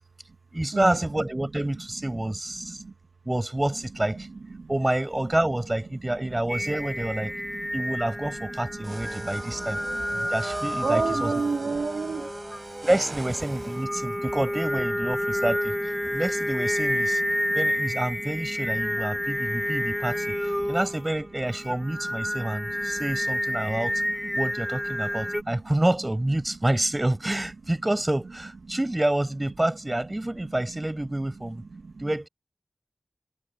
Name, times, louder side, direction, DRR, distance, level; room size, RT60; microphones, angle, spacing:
voice 1, 0.5-2.8 3.2-4.3 4.7-7.3 7.7-9.8 10.3-11.3 12.8-15.7 16.1-17.2 17.5-24.0 24.3-31.6 32.0-32.3, right 1 dB, 25° right, 6.4 m, -28 dB
voice 2, 2.6-2.9 4.2-4.3 4.5-4.7 6.2-6.3 7.2-7.7 8.8-9.0 9.4-10.3 10.8-12.3 14.0-14.1 16.0-16.2 17.3-17.6 19.2-19.3 20.6-20.7 23.6-23.9 25.3-25.6 30.4-30.5 31.7-31.9, right 4 dB, 85° right, 2.1 m, -32 dB
Singing, 6.5-25.4, equal, 5° left, 3.8 m, -30 dB
sound 1, 8.8-13.8, right 2 dB, 50° right, 5.5 m, -39 dB
wide cardioid pair, 50°, 0 cm